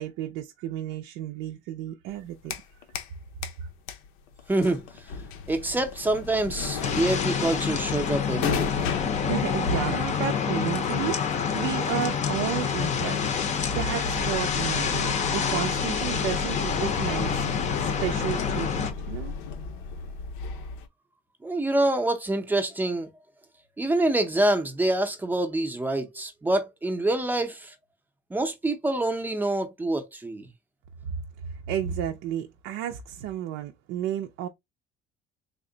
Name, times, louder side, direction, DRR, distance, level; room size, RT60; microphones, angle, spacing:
voice 1, 0.0-2.6 3.6-3.7 9.2-17.5 17.8-19.3 31.4-34.5, right 10 dB, 90° right, 0.5 m, -32 dB
sound 1, 2.1-3.2 3.4-20.9, left 4 dB, 85° left, 0.7 m, -35 dB
voice 2, 4.5-4.9 5.5-8.8 21.4-23.1 23.8-27.7 28.3-30.5, right 2 dB, 10° right, 0.5 m, -26 dB
sound 2, 6.8-18.9, left 7 dB, 35° left, 0.6 m, -27 dB
3.5 x 2.1 x 3.7 m
cardioid pair, 175°, 20 cm